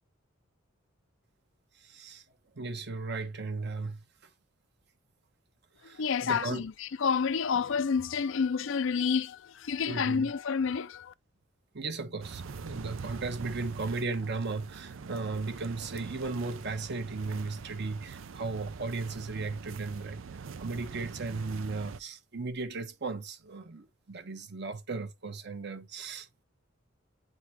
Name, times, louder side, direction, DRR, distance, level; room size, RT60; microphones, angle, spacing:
voice 1, 1.8-2.2 2.5-4.0 5.8-6.6 9.9-10.3 11.7-20.2 20.6-26.3, right 3 dB, 60° right, 1.1 m, -36 dB
voice 2, 5.8-11.1, left 6 dB, 70° left, 0.5 m, -29 dB
sound 1, 12.2-22.0, right 5 dB, 75° right, 0.5 m, -44 dB
9.5 x 3.8 x 2.9 m
head